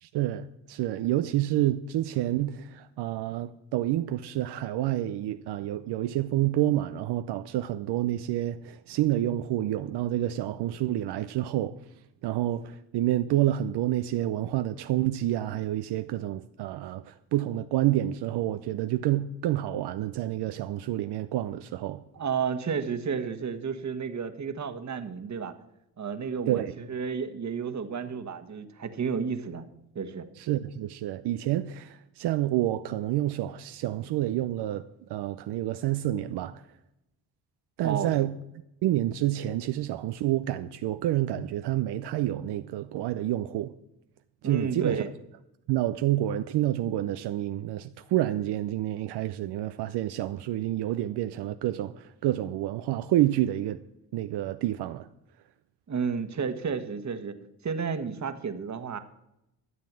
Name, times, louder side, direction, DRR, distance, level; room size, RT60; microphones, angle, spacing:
voice 1, 0.0-11.8 12.2-22.0 26.5-26.7 30.4-34.8 35.1-36.6 37.8-38.3 38.8-43.7 44.4-45.0 45.7-53.8 54.1-55.1, right 13 dB, 75° right, 0.6 m, -28 dB
voice 2, 22.1-25.5 26.0-29.7 29.9-30.3 37.8-38.1 44.4-45.1 55.9-57.3 57.6-59.0, right 6 dB, 45° right, 1.5 m, -31 dB
12.5 x 7.6 x 7.4 m
cardioid pair, 75°, 40 cm